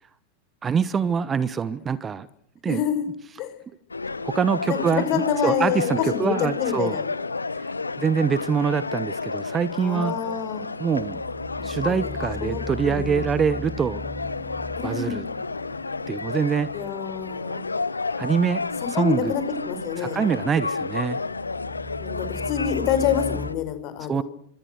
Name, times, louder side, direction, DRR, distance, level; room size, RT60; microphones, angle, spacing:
voice 1, 0.6-2.3 2.6-2.8 4.2-7.0 8.0-10.2 10.8-11.2 11.6-14.0 14.8-15.3 16.1-16.7 18.2-18.6 19.0-19.3 20.0-21.2 24.1-24.2, right 6 dB, 20° right, 18 dB, 1.0 m, -24 dB
voice 2, 2.7-3.1 3.4-3.5 4.7-7.0 9.7-10.7 11.6-12.1 12.4-13.3 14.8-15.2 16.7-17.6 18.8-20.4 22.0-24.2, left 8 dB, 40° left, 9 dB, 5.1 m, -27 dB
sound 1, 3.9-23.5, left 3 dB, 80° left, 1.1 m, -31 dB
sound 2, 11.0-16.9 17.2-17.3 21.3-23.5, left 2 dB, ahead, 1.4 m, -37 dB
25.0 x 24.5 x 6.5 m, 0.68 s
figure-of-eight pair, 90°, 0 cm